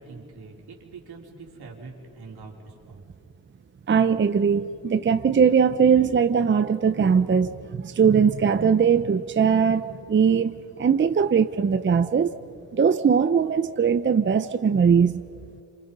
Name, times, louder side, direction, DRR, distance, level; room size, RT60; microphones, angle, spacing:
voice 1, 0.0-3.0, right 4 dB, 85° right, -1 dB, 3.9 m, -44 dB
voice 2, 3.9-12.3 12.7-15.2, right 6 dB, 30° right, 11 dB, 0.6 m, -20 dB
27.5 x 26.5 x 5.4 m, 2.4 s
cardioid pair, 100°, 37 cm